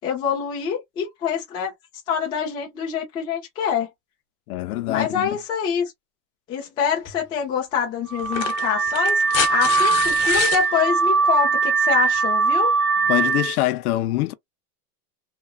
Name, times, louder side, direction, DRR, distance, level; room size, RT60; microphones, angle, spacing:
voice 1, 0.0-1.7 2.1-3.9 4.9-5.9 6.5-9.2 9.5-12.7, left 7 dB, 10° left, 0.4 m, -25 dB
voice 2, 4.5-5.3 13.1-14.3, left 16 dB, 75° left, 0.6 m, -24 dB
sound 1, 7.1-7.2 8.2-10.6 12.2-12.3, left 9 dB, 40° left, 0.8 m, -27 dB
Car / Alarm, 8.1-13.6, right 5 dB, 85° right, 1.4 m, -21 dB
2.9 x 2.4 x 2.3 m
supercardioid pair, 170°, 45 cm